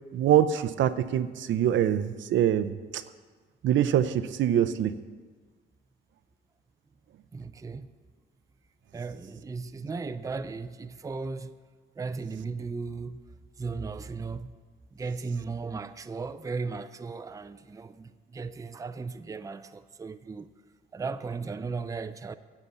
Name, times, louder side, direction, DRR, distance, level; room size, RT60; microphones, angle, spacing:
voice 1, 0.1-3.0 3.6-4.9, right 10 dB, 70° right, 0.6 m, -24 dB
voice 2, 7.3-7.9 8.9-11.6 12.0-13.2 13.6-14.5 14.9-20.5 20.9-22.3, right 4 dB, 15° right, 0.5 m, -36 dB
9.9 x 8.0 x 7.2 m
cardioid pair, 90°, 20 cm